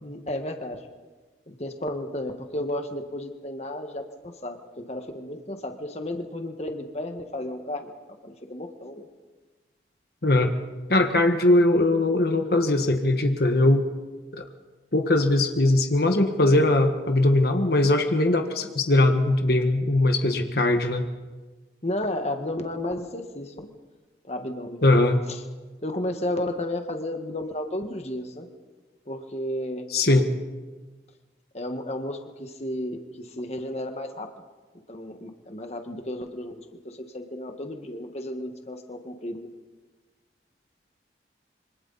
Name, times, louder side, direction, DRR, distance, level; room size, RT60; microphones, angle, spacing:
voice 1, 0.0-0.8 1.5-4.6 4.9-7.9 8.2-9.1 21.8-23.7 24.3-24.8 25.3-25.4 25.8-28.5 29.1-29.8 31.5-34.3 34.9-39.5, left 1 dB, 35° left, 5 dB, 1.6 m, -33 dB
voice 2, 10.2-10.5 10.9-13.8 14.9-21.1 24.8-25.2 29.9-30.3, left 2 dB, 55° left, 5 dB, 1.5 m, -20 dB
27.0 x 25.0 x 4.1 m, 1.3 s
head